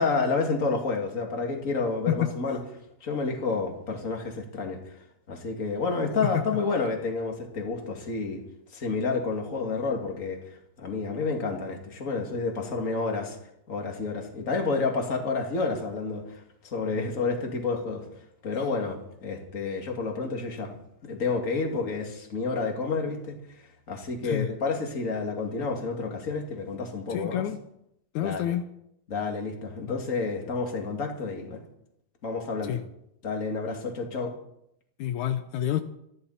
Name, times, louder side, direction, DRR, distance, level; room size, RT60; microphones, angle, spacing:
voice 1, 0.0-2.6 3.0-4.8 5.3-8.4 8.7-10.4 10.8-13.4 13.7-16.2 16.6-18.0 18.4-20.8 21.0-23.4 23.9-27.4 28.2-28.6 29.1-31.6 32.2-32.8 33.2-34.3, left 4 dB, 25° left, 2 dB, 2.0 m, -29 dB
voice 2, 27.1-27.6 28.1-28.6 29.9-30.0 32.6-32.8 35.0-35.8, left 11 dB, 90° left, 9 dB, 1.7 m, -28 dB
27.0 x 11.0 x 4.2 m, 0.77 s
omnidirectional pair, 4.3 m